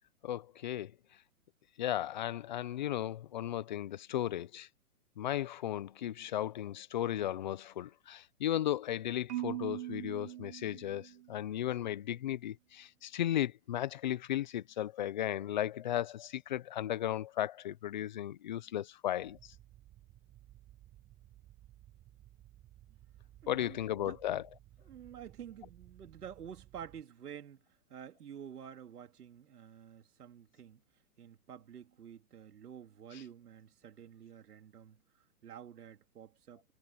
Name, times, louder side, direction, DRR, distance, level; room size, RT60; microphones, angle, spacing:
voice 1, 0.2-0.9 1.8-4.7 5.2-19.5 23.5-24.5, left 12 dB, 30° left, 0.5 m, -35 dB
Marimba xylophone, 9.3-11.5, right 14 dB, 50° right, 1.8 m, -41 dB
sound 1, 19.2-27.0, right 14 dB, 20° right, 7.2 m, -59 dB
voice 2, 23.4-24.2 24.8-30.8 31.2-36.6, right 8 dB, 85° right, 3.0 m, -50 dB
hypercardioid pair, 160°, 45 cm